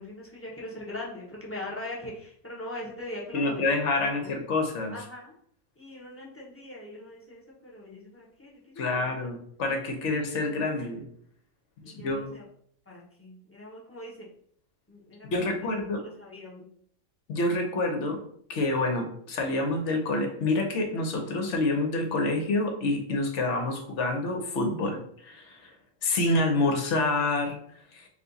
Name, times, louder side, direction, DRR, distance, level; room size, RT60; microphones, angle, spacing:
voice 1, 0.0-3.6 4.0-4.3 4.9-5.3 5.8-9.1 11.8-12.4 12.9-14.3 14.9-15.7 16.2-16.7, left 1 dB, 10° left, -4 dB, 0.9 m, -41 dB
voice 2, 3.3-5.0 8.8-11.0 11.8-12.4 15.3-16.0 17.3-18.2 18.5-25.7 26.0-27.6 27.9-28.1, left 2 dB, 60° left, 4 dB, 1.0 m, -27 dB
4.2 x 2.5 x 4.0 m, 0.64 s
omnidirectional pair, 1.5 m